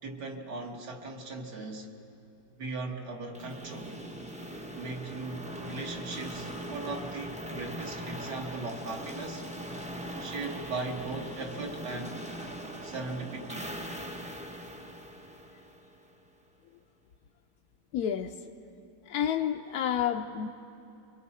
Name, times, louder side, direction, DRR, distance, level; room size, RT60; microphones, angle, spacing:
voice 1, 0.0-1.9 2.6-4.0 4.8-9.4 10.2-12.2 12.8-13.8, right 3 dB, 70° right, 2 dB, 2.2 m, -38 dB
sound 1, 3.3-16.2, equal, 10° right, 0.4 m, -40 dB
voice 2, 17.9-18.3 19.1-20.5, left 9 dB, 70° left, 3 dB, 1.0 m, -29 dB
28.0 x 23.5 x 4.2 m, 2.8 s
omnidirectional pair, 1.9 m